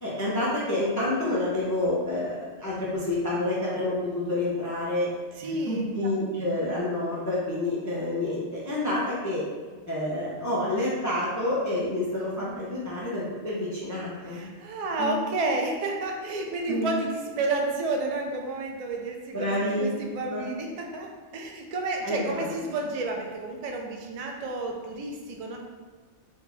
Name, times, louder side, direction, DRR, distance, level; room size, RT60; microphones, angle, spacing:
voice 1, 0.0-5.1 5.5-9.4 9.9-14.4 15.0-15.1 16.7-16.9 19.3-19.9 20.3-20.5 22.0-22.5, left 1 dB, 30° left, -7 dB, 0.3 m, -28 dB
voice 2, 5.4-5.8 12.4-12.5 14.3-25.6, right 2 dB, 60° right, 1 dB, 0.4 m, -31 dB
2.9 x 2.3 x 3.8 m, 1.4 s
omnidirectional pair, 1.2 m